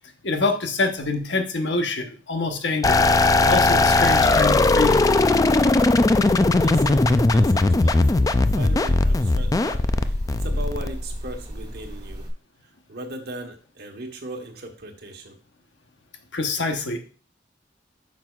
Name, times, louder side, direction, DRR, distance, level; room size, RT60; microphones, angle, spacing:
voice 1, 0.2-5.2 16.3-17.0, left 3 dB, 90° left, 5 dB, 1.0 m, -26 dB
sound 1, 2.8-11.3, left 2 dB, 20° left, 0.3 m, -18 dB
sound 2, 5.7-12.3, equal, 25° right, 1.6 m, -36 dB
voice 2, 6.2-12.3 12.9-15.4, right 1 dB, 65° right, 4 dB, 1.2 m, -38 dB
8.8 x 5.9 x 2.4 m, 0.39 s
head